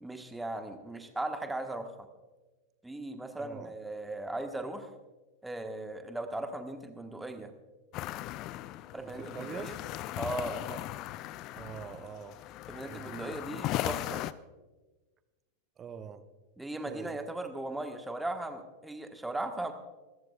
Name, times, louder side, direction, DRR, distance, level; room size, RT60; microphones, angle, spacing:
voice 1, 0.0-1.9 2.8-4.9 5.4-7.5 8.9-9.8 10.2-10.6 12.7-14.2 16.6-19.7, right 2 dB, 5° right, 6 dB, 1.4 m, -38 dB
voice 2, 3.4-3.7 9.0-9.7 10.5-10.8 11.5-12.4 12.8-13.4 15.8-16.3 16.8-17.2, right 7 dB, 25° right, 11 dB, 0.9 m, -44 dB
sound 1, 7.9-14.3, left 15 dB, 40° left, 0.5 m, -38 dB
25.5 x 14.0 x 2.4 m, 1.2 s
figure-of-eight pair, 90°, 0 cm